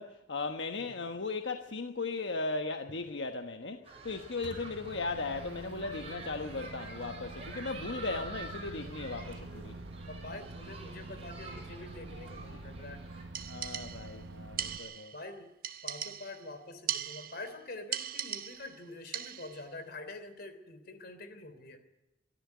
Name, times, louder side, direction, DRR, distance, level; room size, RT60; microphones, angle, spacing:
voice 1, 0.0-9.7 12.5-12.6 13.5-15.1, left 3 dB, 85° left, 1.2 m, -37 dB
sound 1, 3.8-13.2, right 3 dB, 35° right, 7.9 m, -48 dB
Microwave oven, 4.4-14.8, right 2 dB, 75° right, 1.1 m, -46 dB
voice 2, 10.1-13.1 15.1-15.5 15.8-21.8, left 2 dB, 60° left, 3.2 m, -46 dB
sound 2, 13.3-14.2 14.6-15.2 15.6-16.5 16.9-17.5 17.9-18.8 19.1-19.6, right 10 dB, 55° right, 0.9 m, -39 dB
23.5 x 13.5 x 9.4 m
head